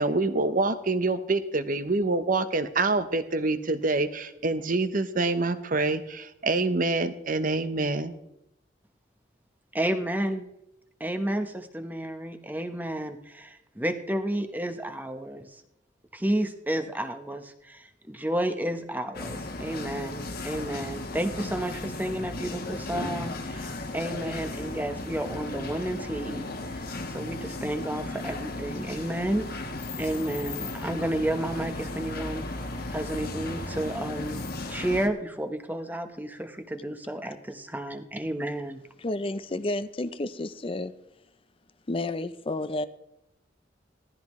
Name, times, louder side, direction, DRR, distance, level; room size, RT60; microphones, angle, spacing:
voice 1, 0.0-8.1, right 3 dB, 45° right, 10 dB, 0.9 m, -26 dB
voice 2, 9.7-10.5 11.0-15.6 16.1-29.5 30.0-32.4 32.9-38.8, right 1 dB, 10° right, 7 dB, 1.0 m, -31 dB
sound 1, 19.1-35.1, left 2 dB, 55° left, 1.3 m, -35 dB
voice 3, 39.0-40.9 41.9-42.9, left 2 dB, 30° left, 13 dB, 0.6 m, -31 dB
17.5 x 14.0 x 3.2 m, 0.84 s
head